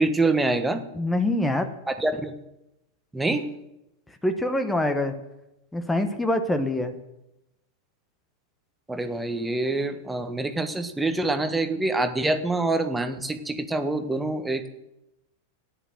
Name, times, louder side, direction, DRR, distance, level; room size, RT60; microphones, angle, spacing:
voice 1, 0.0-0.8 1.9-2.3 3.1-3.5 8.9-14.7, right 2 dB, 10° right, 8 dB, 1.4 m, -25 dB
voice 2, 0.9-1.7 4.1-5.1 5.7-6.9, left 1 dB, 5° left, 8 dB, 1.2 m, -25 dB
13.0 x 10.5 x 7.8 m, 0.91 s
figure-of-eight pair, 90°, 0 cm